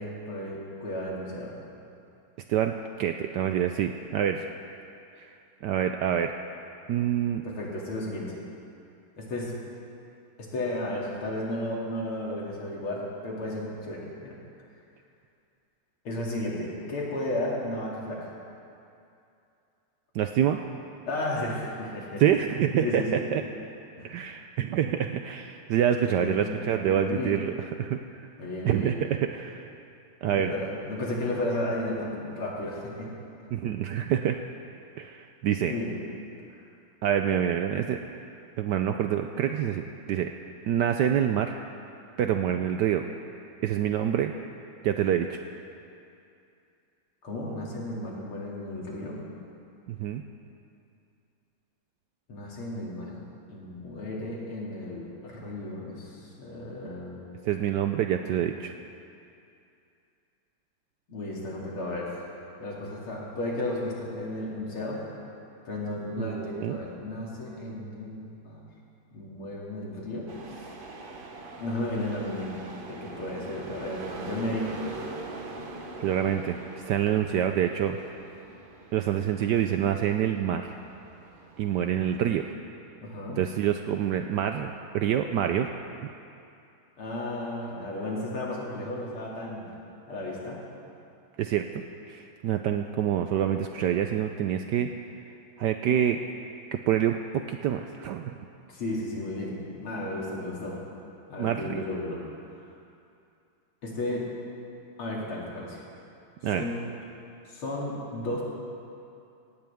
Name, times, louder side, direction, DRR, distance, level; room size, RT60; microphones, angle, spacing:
voice 1, 0.0-1.5 7.4-8.3 9.2-9.5 10.4-14.4 16.0-18.3 21.1-22.2 22.8-23.2 24.0-24.1 26.0-27.4 28.4-28.9 30.2-33.1 35.6-35.9 42.3-42.5 47.2-49.2 52.3-53.1 53.5-57.2 61.1-62.1 62.6-65.2 65.6-68.6 69.1-70.3 70.6-70.7 71.5-72.6 72.9-74.7 83.0-83.4 87.0-89.7 90.1-90.6 98.7-99.5 99.8-100.8 101.3-102.2 103.8-104.3 105.0-105.8 106.5-106.9 107.5-108.4, left 1 dB, 85° left, -4 dB, 3.4 m, -33 dB
voice 2, 2.5-4.5 5.2-5.3 5.6-6.3 6.9-7.4 20.1-20.6 22.2-23.4 24.0-27.5 27.8-28.0 28.6-29.7 30.2-30.5 33.5-34.4 35.0-35.7 37.0-38.0 38.6-40.3 40.7-41.5 42.2-43.0 43.6-44.3 44.8-45.4 49.9-50.2 57.4-58.7 66.2-66.8 76.0-76.6 76.9-78.0 78.9-80.7 81.6-82.4 83.4-85.7 91.4-94.9 95.6-96.2 96.7-98.4 101.4-101.8 106.4-106.6, right 10 dB, 75° right, 6 dB, 1.0 m, -26 dB
sound 1, 70.3-82.5, right 3 dB, 40° right, 0.8 m, -43 dB
17.5 x 16.5 x 3.6 m, 2.6 s
omnidirectional pair, 2.3 m